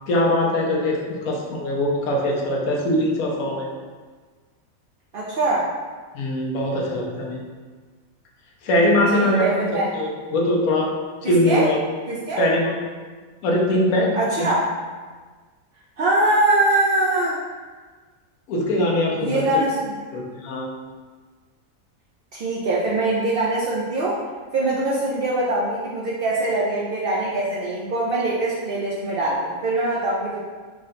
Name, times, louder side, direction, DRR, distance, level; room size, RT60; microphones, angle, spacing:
voice 1, 0.1-3.7 6.1-7.4 8.6-11.8 12.4-12.8 13.4-14.5 18.5-19.6 20.1-20.7, left 1 dB, 80° left, -1 dB, 1.1 m, -22 dB
voice 2, 5.1-5.7 9.1-9.9 11.2-11.7 12.1-12.4 14.2-14.7 16.0-17.4 19.2-20.0 22.3-24.2 24.5-30.4, right 2 dB, 70° right, -6 dB, 0.5 m, -23 dB
3.6 x 2.1 x 3.8 m, 1.4 s
omnidirectional pair, 1.5 m